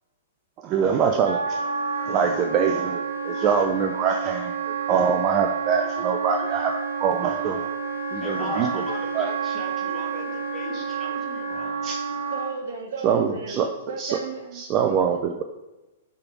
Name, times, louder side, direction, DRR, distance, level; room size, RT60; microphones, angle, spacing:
voice 1, 0.6-1.7 2.1-7.7 8.1-8.8 9.1-9.3 10.7-10.8 11.5-12.0 13.0-13.7 14.0-14.1 14.6-15.4, right 7 dB, 35° right, 4 dB, 0.5 m, -24 dB
Wind instrument woodwind instrument, 1.2-12.6, right 5 dB, 90° right, 1.1 m, -29 dB
voice 2, 8.2-11.8, left 2 dB, 15° left, -2 dB, 1.8 m, -38 dB
voice 3, 12.1-15.0, right 4 dB, 65° right, 3 dB, 1.2 m, -35 dB
6.7 x 3.6 x 4.5 m, 1.0 s
hypercardioid pair, 115°, 0 cm